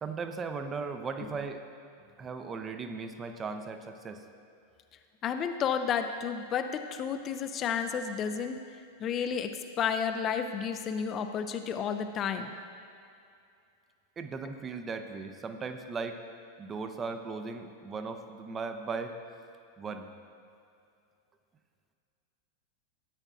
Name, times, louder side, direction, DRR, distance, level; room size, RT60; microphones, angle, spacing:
voice 1, 0.0-1.6 2.2-4.2 14.2-16.2 16.6-19.1 19.8-20.1, right 4 dB, 20° right, 7 dB, 0.5 m, -37 dB
voice 2, 5.2-8.6 9.0-12.5, left 7 dB, 30° left, 8 dB, 0.4 m, -31 dB
13.5 x 8.8 x 2.4 m, 2.5 s
figure-of-eight pair, 90°, 0 cm